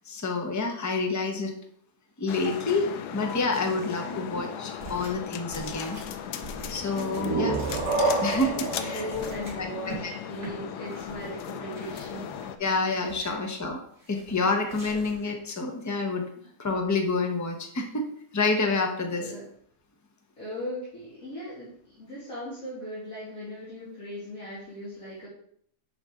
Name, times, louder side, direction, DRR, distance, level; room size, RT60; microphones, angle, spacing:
voice 1, 0.1-1.5 2.2-2.9 3.1-6.0 6.7-7.6 8.2-9.0 9.6-9.7 10.0-10.1 12.6-13.8 14.1-16.3 16.6-18.0 18.3-19.3, left 3 dB, 15° left, 3 dB, 0.6 m, -28 dB
sound 1, 2.3-12.6, left 8 dB, 85° left, 1.2 m, -37 dB
sound 2, 4.8-5.2 5.5-10.0 10.3-10.5 10.9-11.3 11.7-12.5 12.9-13.5 14.0-14.4 14.7-15.3, right 2 dB, 35° right, 3.0 m, -44 dB
sound 3, 6.9-10.5, right 2 dB, 65° right, 2.0 m, -29 dB
voice 2, 8.8-12.3 13.2-13.4 16.3-16.5 19.2-19.5 20.4-25.3, left 1 dB, 60° left, -10 dB, 2.7 m, -38 dB
7.3 x 5.4 x 3.6 m, 0.66 s
omnidirectional pair, 1.7 m